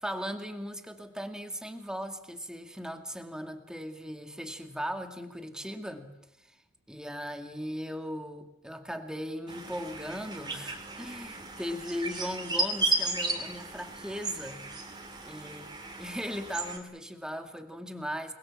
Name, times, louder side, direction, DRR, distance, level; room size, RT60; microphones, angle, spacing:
voice 1, 0.0-6.1 6.4-6.6 6.9-15.7 16.0-18.3, equal, 5° right, 6 dB, 2.2 m, -38 dB
sound 1, 9.5-16.8, right 2 dB, 20° right, 3.6 m, -34 dB
29.0 x 21.5 x 7.3 m, 0.84 s
head